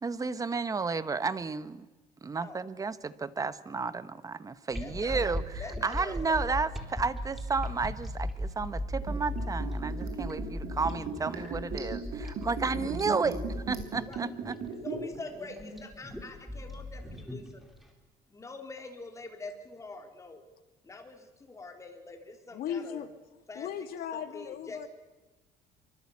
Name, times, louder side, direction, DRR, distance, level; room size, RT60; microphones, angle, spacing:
voice 1, 0.0-1.9 2.2-14.6, right 4 dB, 20° right, 14 dB, 1.0 m, -32 dB
sound 1, 4.7-17.8, left 1 dB, ahead, 4.0 m, -37 dB
voice 2, 4.8-6.4 14.1-14.2 14.7-17.6 18.3-20.4 20.8-23.0 23.5-23.7 24.1-24.9, left 3 dB, 20° left, 4 dB, 3.6 m, -45 dB
Liquid, 9.0-15.2 15.5-15.6, right 6 dB, 65° right, 6.8 m, -37 dB
voice 3, 22.5-23.1 23.5-24.9, left 8 dB, 65° left, 9 dB, 2.3 m, -37 dB
24.5 x 24.0 x 8.6 m, 1.1 s
cardioid pair, 145°, 17 cm